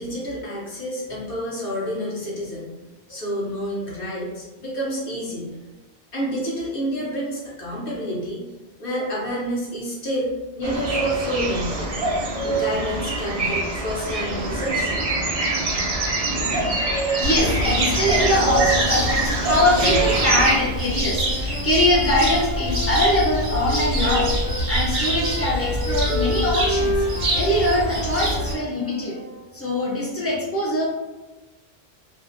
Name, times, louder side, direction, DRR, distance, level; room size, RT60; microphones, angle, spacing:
voice 1, 0.0-2.8 3.1-5.6 6.1-8.4 8.8-11.9 12.4-14.9, equal, 60° left, -5 dB, 0.8 m, -29 dB
sound 1, 10.6-20.6, right 2 dB, 50° right, 0.4 m, -24 dB
voice 2, 17.2-24.3 24.7-26.9 27.3-29.1 29.5-30.8, left 1 dB, 20° left, -6 dB, 0.4 m, -22 dB
Cricket, 17.2-28.5, equal, 70° right, 1.0 m, -25 dB
Wind instrument woodwind instrument, 21.0-24.7 25.0-29.4, left 1 dB, 85° left, 1.0 m, -30 dB
2.5 x 2.0 x 2.5 m, 1.2 s
omnidirectional pair, 1.1 m